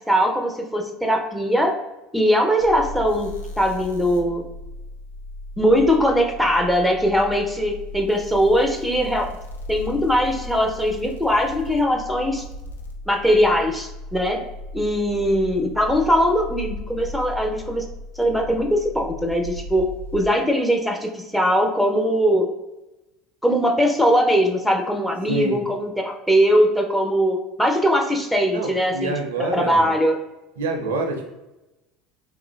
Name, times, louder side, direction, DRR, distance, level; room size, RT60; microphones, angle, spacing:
voice 1, 0.0-1.7 2.1-3.3 3.6-4.4 5.6-9.3 9.7-12.4 13.1-14.4 14.7-17.8 18.2-19.9 20.1-22.5 23.4-30.2, equal, ahead, 3 dB, 0.5 m, -20 dB
sound 1, 2.6-20.2, left 2 dB, 75° left, 0.4 m, -36 dB
voice 2, 25.3-25.6 28.5-29.9 30.6-31.3, right 2 dB, 65° right, 4 dB, 0.4 m, -26 dB
3.4 x 3.0 x 2.2 m, 0.99 s
figure-of-eight pair, 70°, 0 cm